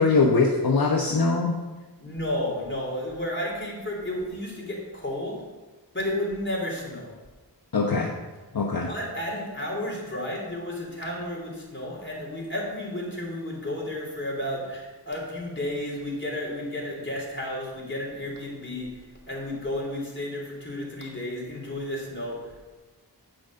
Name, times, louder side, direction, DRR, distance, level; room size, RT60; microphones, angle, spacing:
voice 1, 0.0-1.6 7.7-8.1 8.5-8.9, left 4 dB, 60° left, -1 dB, 0.9 m, -22 dB
voice 2, 2.0-5.4 5.9-7.1 8.8-18.9 19.3-22.5, left 1 dB, 30° left, -3 dB, 3.3 m, -32 dB
8.8 x 6.2 x 6.3 m, 1.2 s
wide cardioid pair, 55°, 41 cm